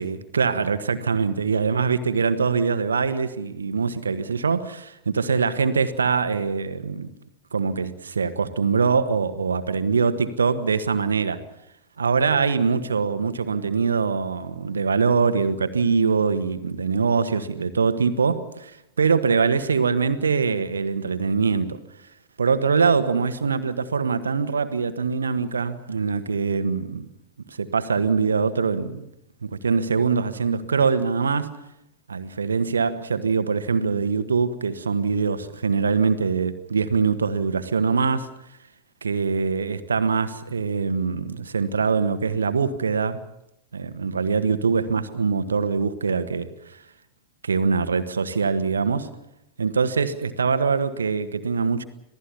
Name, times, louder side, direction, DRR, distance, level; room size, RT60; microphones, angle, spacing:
voice 1, 0.0-7.1 7.5-11.4 12.0-21.8 22.4-27.1 27.5-29.1 29.4-31.6 32.1-38.3 39.0-43.2 43.7-46.5 47.4-49.1 49.6-51.8, right 5 dB, 70° right, 1.5 m, -23 dB
26.5 x 18.0 x 7.1 m
figure-of-eight pair, 90°, 0 cm